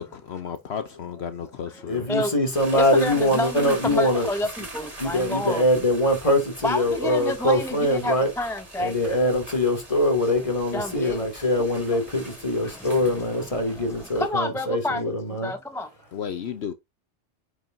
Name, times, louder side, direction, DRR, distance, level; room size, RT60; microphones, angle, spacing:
voice 1, 0.0-2.1 16.1-16.7, left 7 dB, 70° left, 1.0 m, -33 dB
voice 2, 1.9-4.3 5.0-8.3 8.8-15.5, left 1 dB, 30° left, 2.7 m, -23 dB
sound 1, 2.5-14.3, right 2 dB, 35° right, 2.5 m, -42 dB
voice 3, 2.7-5.6 6.6-8.9 10.7-11.2 14.2-15.1 15.4-15.9, left 1 dB, 5° left, 0.6 m, -28 dB
9.1 x 5.3 x 2.7 m
omnidirectional pair, 1.2 m